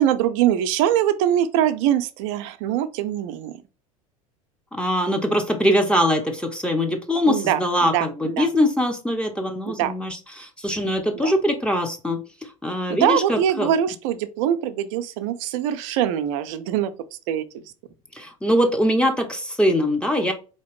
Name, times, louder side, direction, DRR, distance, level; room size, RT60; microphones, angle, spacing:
voice 1, 0.0-3.5 7.3-8.5 9.7-9.9 11.1-11.3 12.9-16.9 17.3-17.6, right 10 dB, 55° right, 0.5 m, -23 dB
voice 2, 4.7-13.7 18.1-20.3, equal, 5° left, 0.7 m, -22 dB
4.2 x 2.9 x 3.0 m
hypercardioid pair, 80°, 18 cm